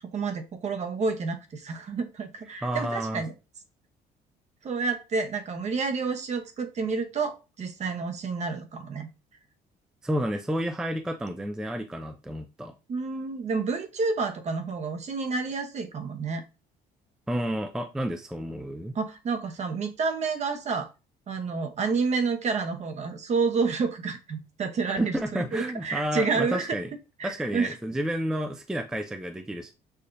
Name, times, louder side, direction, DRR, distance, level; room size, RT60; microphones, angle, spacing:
voice 1, 0.1-3.3 4.6-9.1 12.9-16.4 18.9-20.9 21.3-26.8 27.2-27.8, right 4 dB, 40° right, 6 dB, 0.9 m, -29 dB
voice 2, 2.6-3.2 10.0-12.7 17.3-19.0 24.9-26.9 27.2-29.7, equal, 5° right, 6 dB, 0.3 m, -31 dB
6.6 x 2.7 x 2.5 m, 0.28 s
cardioid pair, 110°, 17 cm